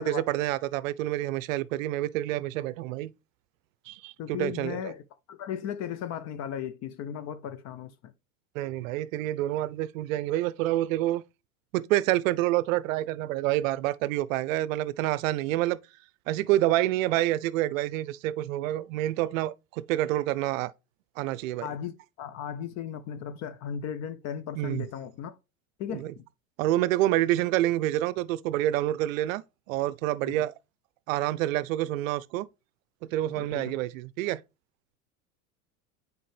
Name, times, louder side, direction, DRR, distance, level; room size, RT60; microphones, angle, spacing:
voice 1, 0.0-3.1 3.9-4.9 8.6-11.2 11.7-15.8 16.3-20.7 21.2-21.7 24.6-24.9 25.9-26.1 26.6-30.5 31.1-32.5 33.1-34.4, right 15 dB, 65° right, 0.6 m, -28 dB
voice 2, 4.2-5.0 5.3-8.1 21.6-25.4 25.8-26.2 30.3-30.4 33.3-33.8, left 8 dB, 40° left, 0.6 m, -36 dB
7.5 x 4.6 x 3.3 m
hypercardioid pair, 90°, 43 cm